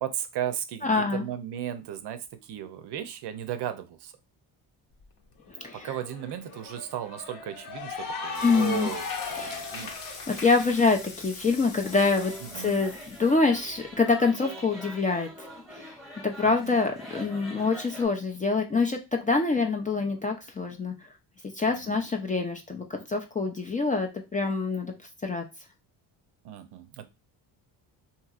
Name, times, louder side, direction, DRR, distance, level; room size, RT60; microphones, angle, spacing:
voice 1, 0.0-4.1 5.7-9.9 12.4-12.8 16.4-16.8 21.7-22.0 26.4-27.1, right 10 dB, 60° right, 9 dB, 0.6 m, -35 dB
voice 2, 0.8-1.3 5.5-5.9 8.4-8.9 9.3-9.6 10.3-20.9 21.5-24.9 25.2-25.4, left 4 dB, 20° left, 2 dB, 0.4 m, -26 dB
Cheering / Applause, 5.0-5.1 5.4-10.9, left 4 dB, 45° left, 0.8 m, -37 dB
sound 1, 8.3-14.1, left 4 dB, 75° left, 1.0 m, -44 dB
sound 2, 11.8-18.1, equal, ahead, 1.0 m, -44 dB
2.8 x 2.8 x 2.4 m, 0.25 s
cardioid pair, 95°, 45 cm